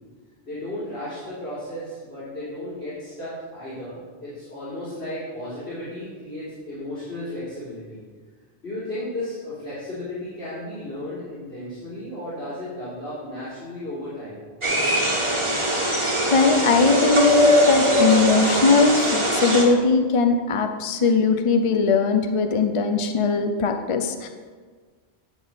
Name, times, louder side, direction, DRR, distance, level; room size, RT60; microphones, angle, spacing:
voice 1, 0.4-8.0 8.6-14.4, left 1 dB, 85° left, -13 dB, 3.5 m, -34 dB
sound 1, 14.6-19.6, equal, 30° right, 1.5 m, -21 dB
voice 2, 16.3-24.3, left 4 dB, 40° left, 6 dB, 0.5 m, -20 dB
10.5 x 4.1 x 7.1 m, 1.5 s
omnidirectional pair, 1.1 m